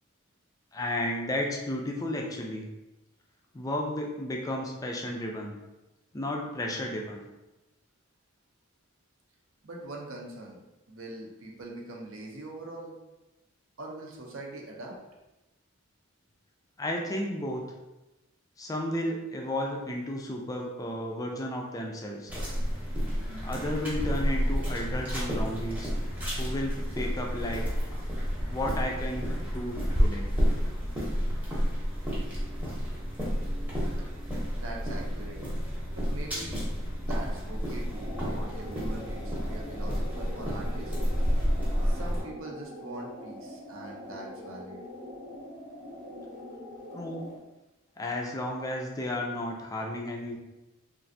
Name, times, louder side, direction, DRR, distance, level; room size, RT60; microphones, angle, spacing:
voice 1, 0.7-2.7 3.5-5.6 6.1-7.2 16.8-17.6 18.6-22.3 23.4-25.9 26.4-27.7 28.5-30.3 46.9-47.2 48.0-50.4, left 1 dB, 15° left, 1 dB, 0.3 m, -33 dB
voice 2, 9.6-10.6 10.9-12.9 13.8-15.0 33.8-35.4 35.9-36.6 37.0-40.9 41.8-44.8, right 2 dB, 65° right, -1 dB, 0.6 m, -42 dB
sound 1, 22.3-42.2, equal, 10° right, 0.7 m, -30 dB
sound 2, 37.8-47.4, left 1 dB, 40° right, 0.8 m, -43 dB
3.2 x 2.4 x 2.6 m, 1.0 s
head